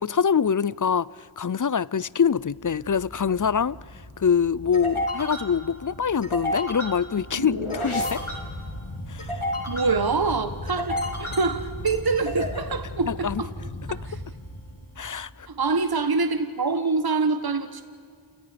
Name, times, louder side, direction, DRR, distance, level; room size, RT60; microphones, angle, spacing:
voice 1, 0.0-1.1 1.4-3.8 4.2-8.2 9.1-9.3 13.1-13.4 15.0-15.5, left 7 dB, 40° left, 0.5 m, -24 dB
sound 1, 2.4-15.1, left 1 dB, 75° left, 3.8 m, -33 dB
voice 2, 9.7-13.5 13.9-14.2 15.5-17.8, right 4 dB, 45° right, 1.4 m, -25 dB
29.5 x 29.5 x 5.2 m
wide cardioid pair, 40°, 50 cm